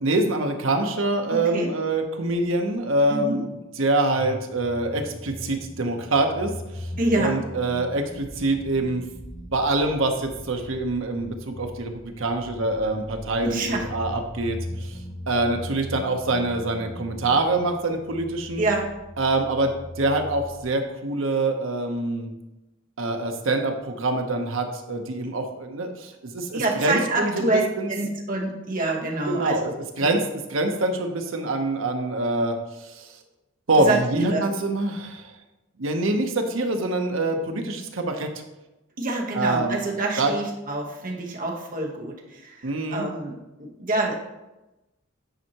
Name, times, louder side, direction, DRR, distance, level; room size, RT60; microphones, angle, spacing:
voice 1, 0.0-3.5 3.8-6.9 7.2-9.0 9.5-15.0 15.3-18.7 19.2-22.3 23.0-27.9 29.3-30.2 30.5-33.2 33.7-35.3 35.8-38.3 39.3-39.8 40.2-40.3 42.6-43.0, right 2 dB, 75° right, 4 dB, 0.8 m, -25 dB
voice 2, 1.3-1.7 3.1-3.4 7.0-7.4 13.4-13.9 18.6-18.9 26.5-27.6 27.9-29.7 30.0-30.2 33.8-34.4 39.0-44.2, right 2 dB, 45° right, 0 dB, 1.1 m, -27 dB
sound 1, 4.1-20.6, left 1 dB, 5° left, 0.7 m, -39 dB
9.2 x 4.5 x 2.9 m, 0.99 s
head